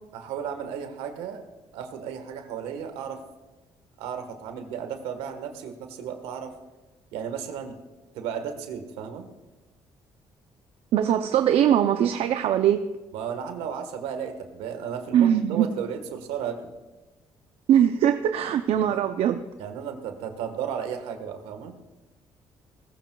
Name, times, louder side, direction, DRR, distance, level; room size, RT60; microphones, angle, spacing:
voice 1, 0.1-1.4 1.7-3.2 4.0-6.5 7.1-7.7 8.1-9.3 13.1-16.7 18.7-19.1 19.6-21.8, right 8 dB, 90° right, 7 dB, 1.5 m, -34 dB
voice 2, 10.9-12.8 15.1-15.7 17.7-19.4, right 10 dB, 75° right, 7 dB, 0.6 m, -21 dB
20.0 x 15.0 x 2.4 m, 1.2 s
supercardioid pair, 70°, 10 cm